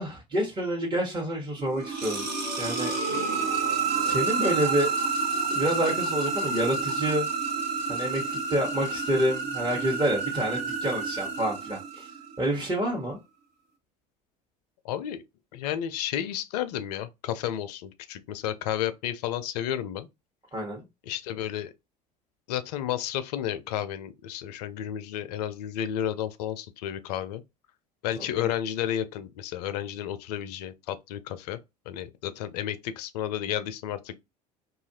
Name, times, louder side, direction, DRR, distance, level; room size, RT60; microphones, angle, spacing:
voice 1, 0.0-2.3 2.6-3.6 4.0-4.9 5.5-7.3 7.9-13.2 20.5-20.8 28.2-28.5, right 1 dB, 20° right, 1.0 m, -28 dB
sound 1, 1.6-12.3, right 4 dB, 55° right, 1.3 m, -29 dB
voice 2, 14.8-15.2 15.5-20.1 21.1-21.7 22.5-27.4 28.0-31.6 31.9-34.1, left 11 dB, 75° left, 0.4 m, -32 dB
2.7 x 2.4 x 2.7 m
hypercardioid pair, 70°, 21 cm